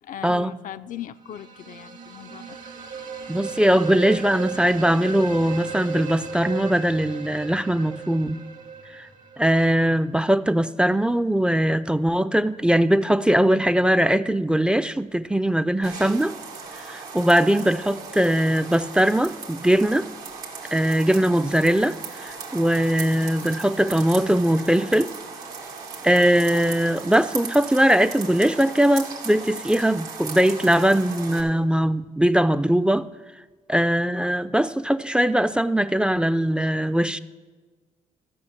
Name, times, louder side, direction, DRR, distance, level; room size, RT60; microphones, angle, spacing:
voice 1, 0.0-2.6, left 10 dB, 65° left, 0.4 m, -38 dB
sound 1, 1.2-10.0, right 5 dB, 65° right, 1.5 m, -36 dB
voice 2, 3.3-8.4 9.0-9.1 9.4-16.3 16.8-20.1 20.7-25.1 26.0-33.1 33.7-37.2, right 1 dB, 5° right, 0.4 m, -21 dB
sound 2, 15.8-31.4, right 5 dB, 85° right, 1.7 m, -37 dB
13.0 x 5.5 x 7.4 m
supercardioid pair, 55°, 15 cm